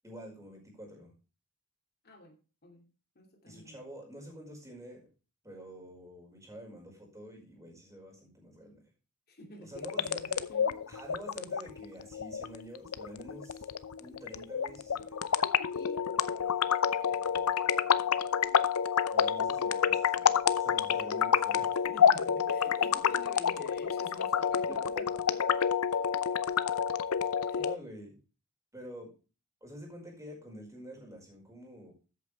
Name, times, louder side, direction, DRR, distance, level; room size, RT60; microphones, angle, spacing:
voice 1, 0.0-1.1 3.5-5.1 5.4-8.9 9.6-10.4 10.9-13.7 14.0-15.2 19.1-21.7 22.5-22.6 25.0-25.7 27.6-28.2 28.7-29.1 29.6-31.9, equal, 15° right, 0 dB, 4.9 m, -47 dB
voice 2, 2.0-2.4 2.6-2.9 3.1-3.8 9.3-10.8 15.7-18.7 21.8-24.9 27.4-27.6, left 1 dB, 45° left, 2 dB, 2.6 m, -50 dB
sound 1, 9.7-27.7, left 7 dB, 85° left, 0.7 m, -29 dB
13.5 x 8.4 x 3.3 m, 0.33 s
head